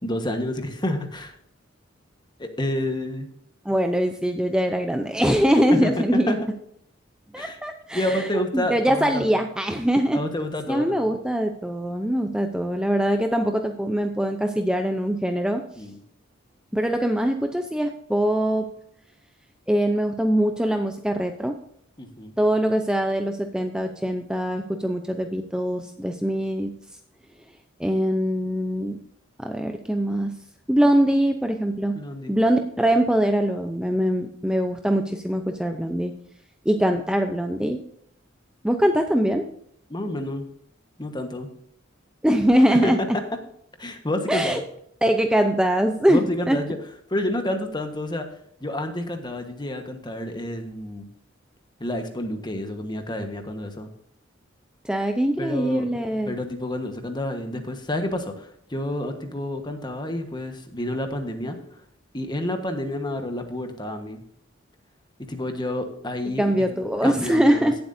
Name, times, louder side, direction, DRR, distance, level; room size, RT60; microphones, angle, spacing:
voice 1, 0.0-1.3 2.4-3.3 5.7-5.9 6.3-6.4 7.4-7.6 7.9-9.4 10.1-11.1 15.8-16.0 22.0-22.3 31.9-32.3 39.9-40.5 41.0-41.5 42.7-42.9 43.8-44.6 46.1-46.8 47.1-48.3 48.6-51.1 51.8-53.9 55.4-55.8 56.3-61.8 62.1-64.2 65.2-66.4 67.0-67.7, left 1 dB, 25° left, 6 dB, 1.3 m, -29 dB
voice 2, 3.6-6.4 7.3-10.2 10.7-15.6 16.7-18.7 19.7-21.6 22.4-26.7 27.8-29.0 29.4-30.4 30.7-32.0 32.3-36.1 36.7-37.8 38.6-39.5 42.2-43.0 44.3-44.6 45.0-46.6 54.8-56.3 66.4-67.8, equal, 5° right, 5 dB, 0.6 m, -22 dB
17.5 x 7.8 x 2.7 m, 0.71 s
head